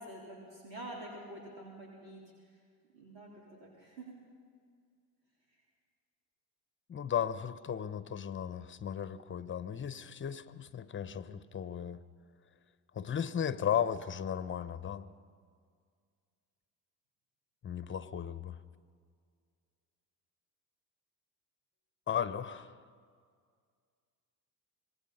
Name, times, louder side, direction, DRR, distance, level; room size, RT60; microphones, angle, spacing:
voice 1, 0.0-2.2 2.9-3.3 3.6-4.1, right 1 dB, 85° right, -3 dB, 4.0 m, -47 dB
voice 2, 6.9-12.0 12.9-15.1 17.6-18.6 22.1-22.8, left 8 dB, 25° left, 14 dB, 1.0 m, -35 dB
26.0 x 20.0 x 5.6 m, 2.1 s
hypercardioid pair, 65°, 50 cm